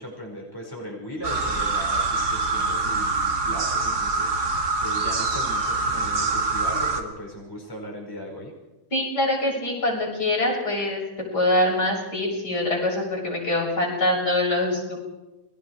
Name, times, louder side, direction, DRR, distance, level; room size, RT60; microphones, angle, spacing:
voice 1, 0.0-8.5, equal, 10° left, -1 dB, 5.3 m, -37 dB
sound 1, 1.2-7.0, right 3 dB, 50° right, 2.6 m, -25 dB
voice 2, 8.9-11.0 11.3-15.0, left 1 dB, 55° left, -2 dB, 7.4 m, -24 dB
29.5 x 22.5 x 4.9 m, 1.0 s
omnidirectional pair, 2.2 m